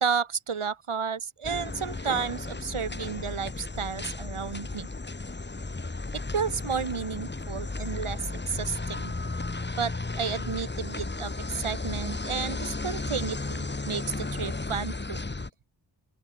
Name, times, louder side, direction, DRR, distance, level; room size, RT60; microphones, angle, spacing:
voice 1, 0.0-4.9 6.3-8.2 8.5-9.1 9.8-15.2, right 6 dB, 75° right, 2.1 m, -32 dB
sound 1, 1.4-15.5, left 3 dB, 20° left, 1.2 m, -34 dB
open air
wide cardioid pair, 60°, 50 cm